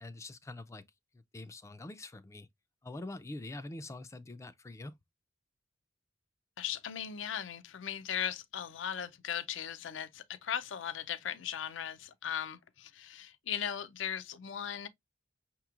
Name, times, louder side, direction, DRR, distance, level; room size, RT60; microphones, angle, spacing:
voice 1, 0.0-0.9 1.3-2.5 2.8-5.0, left 2 dB, 15° left, 0.3 m, -44 dB
voice 2, 6.6-14.9, left 9 dB, 75° left, 0.4 m, -38 dB
5.8 x 2.9 x 2.4 m
head